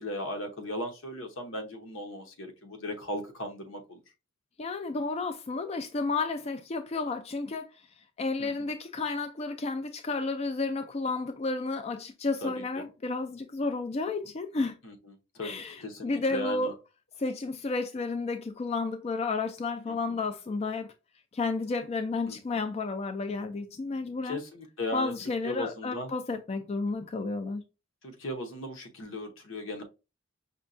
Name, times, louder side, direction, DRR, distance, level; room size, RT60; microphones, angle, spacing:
voice 1, 0.0-4.0 8.4-8.7 12.4-12.8 14.8-14.9 15.3-16.7 19.9-20.2 22.3-22.6 24.2-25.1 25.4-26.1 28.0-29.8, left 1 dB, 80° left, 0.9 m, -37 dB
voice 2, 4.6-7.7 8.2-14.8 15.4-16.7 17.2-20.9 21.3-24.4 24.9-27.6, left 3 dB, 30° left, 0.3 m, -32 dB
5.2 x 2.2 x 2.5 m
head